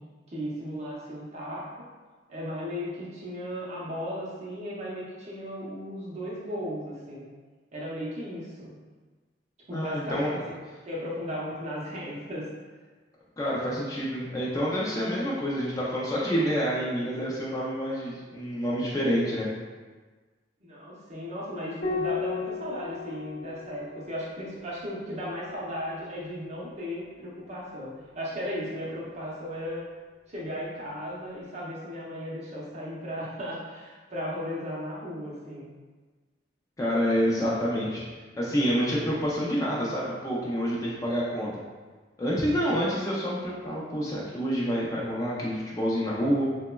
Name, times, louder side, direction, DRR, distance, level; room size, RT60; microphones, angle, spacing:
voice 1, 0.3-1.7 2.3-7.3 7.7-8.7 9.7-10.6 10.9-12.5 20.6-29.9 30.3-35.7, equal, 35° right, -6 dB, 0.6 m, -36 dB
voice 2, 9.7-10.5 13.4-19.5 36.8-38.0 38.4-41.5 42.2-46.4, equal, 20° left, -6 dB, 0.3 m, -28 dB
Piano, 21.8-26.7 28.3-29.1, left 5 dB, 70° left, 0.6 m, -37 dB
3.0 x 2.0 x 2.2 m, 1.4 s
head